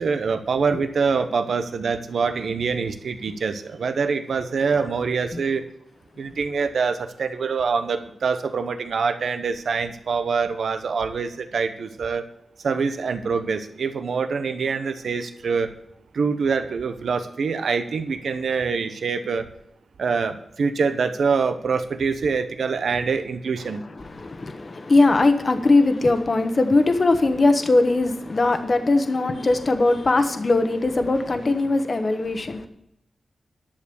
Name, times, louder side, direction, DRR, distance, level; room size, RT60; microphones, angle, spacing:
voice 1, 0.0-5.6 6.2-12.2 12.6-15.7 16.1-19.5 20.0-23.8, right 5 dB, 80° right, 8 dB, 0.9 m, -25 dB
voice 2, 23.9-32.7, left 2 dB, 45° left, 7 dB, 1.2 m, -20 dB
11.0 x 7.2 x 7.0 m, 0.78 s
wide cardioid pair, 80°, 0 cm